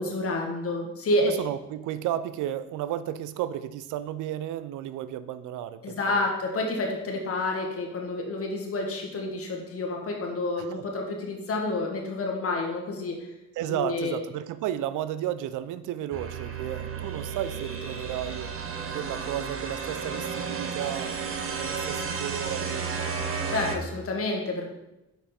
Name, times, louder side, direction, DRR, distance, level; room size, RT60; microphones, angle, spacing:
voice 1, 0.0-1.4 5.8-13.3 13.7-14.2 23.5-24.7, left 2 dB, 50° left, 1 dB, 1.6 m, -29 dB
voice 2, 1.2-6.3 10.6-10.8 13.6-18.5 18.9-21.1 21.6-22.9, right 11 dB, 85° right, 13 dB, 0.4 m, -33 dB
sound 1, 16.1-23.8, right 5 dB, 45° right, 0.9 m, -33 dB
5.9 x 5.2 x 4.2 m, 0.92 s
cardioid pair, 90°, 30 cm